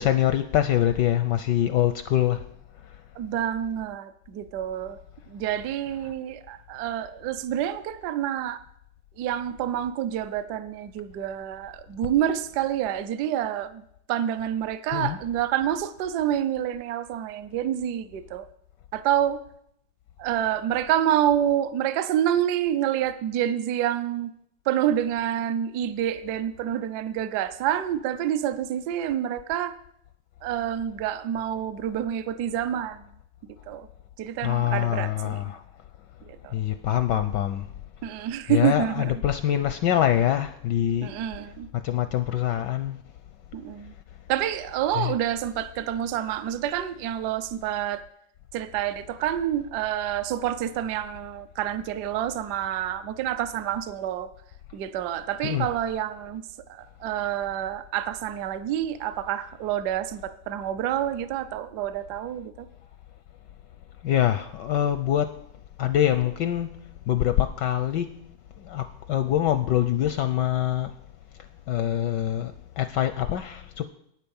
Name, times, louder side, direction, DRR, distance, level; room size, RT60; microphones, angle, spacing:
voice 1, 0.0-2.5 14.9-15.2 34.4-35.6 36.5-37.7 38.5-41.1 41.7-43.0 45.0-45.1 55.4-55.7 64.0-65.3 65.8-68.2 68.6-70.9 71.7-73.9, left 11 dB, 75° left, 1.0 m, -24 dB
voice 2, 3.2-5.0 5.3-8.6 9.2-13.8 14.1-18.5 18.9-19.4 20.2-24.3 24.7-29.8 30.4-33.0 33.7-33.9 34.2-35.4 36.3-36.5 38.0-39.1 41.0-41.7 43.5-43.9 44.3-48.0 48.5-54.3 54.7-56.4 56.7-62.7, right 11 dB, 65° right, 1.0 m, -28 dB
9.2 x 9.1 x 7.0 m
omnidirectional pair, 2.3 m